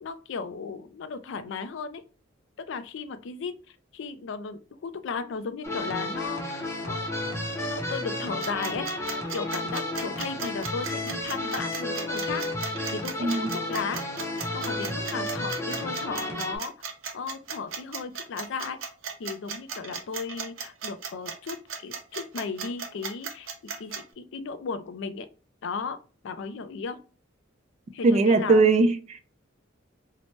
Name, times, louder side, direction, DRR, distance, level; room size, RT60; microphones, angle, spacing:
voice 1, 0.0-2.0 2.7-8.9 9.3-14.0 14.5-16.7 17.1-18.8 19.2-21.6 21.8-23.5 23.8-25.3 25.6-26.0 26.2-27.0 27.9-28.7, left 5 dB, 65° left, 0.4 m, -35 dB
sound 1, 5.6-16.6, left 1 dB, 15° left, 0.6 m, -32 dB
sound 2, 8.4-24.0, right 6 dB, 90° right, 0.6 m, -36 dB
voice 2, 13.2-13.6 28.0-29.2, right 3 dB, 35° right, 0.3 m, -20 dB
2.8 x 2.1 x 2.9 m
head